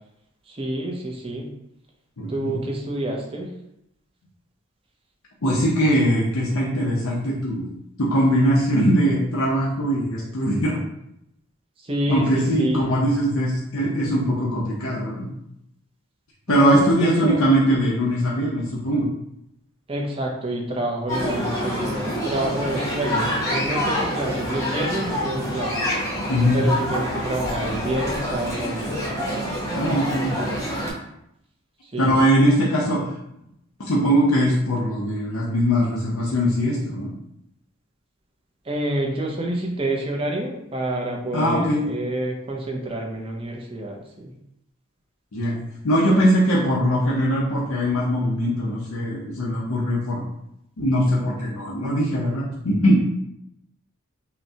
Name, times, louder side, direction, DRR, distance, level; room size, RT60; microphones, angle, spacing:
voice 1, 0.5-1.5 2.3-3.5 11.8-12.9 16.5-17.4 19.9-26.0 26.5-29.1 31.9-32.2 38.7-44.3, right 1 dB, 25° right, 0 dB, 0.6 m, -28 dB
voice 2, 2.2-2.6 5.4-7.7 8.0-10.8 12.1-15.3 16.5-19.0 26.3-26.6 29.7-30.4 32.0-33.1 33.8-37.1 41.3-41.8 45.3-45.6 45.8-50.3 50.8-53.0, equal, 75° left, -4 dB, 0.7 m, -21 dB
sound 1, 21.1-30.9, equal, 15° left, 0.8 m, -26 dB
5.7 x 2.2 x 2.8 m, 0.80 s
head